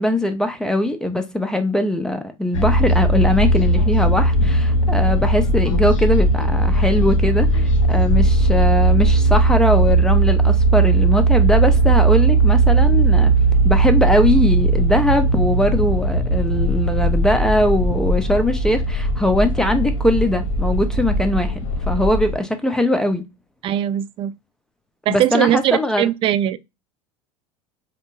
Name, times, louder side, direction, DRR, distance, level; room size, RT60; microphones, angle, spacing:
voice 1, 0.0-13.3 13.6-21.6 21.9-23.2 25.1-26.1, left 1 dB, 5° left, 0.7 m, -20 dB
sound 1, 2.5-22.4, right 2 dB, 70° left, 0.7 m, -17 dB
voice 2, 23.6-24.3 25.1-26.6, right 12 dB, 30° right, 0.4 m, -20 dB
5.2 x 2.1 x 2.5 m
figure-of-eight pair, 75°, 17 cm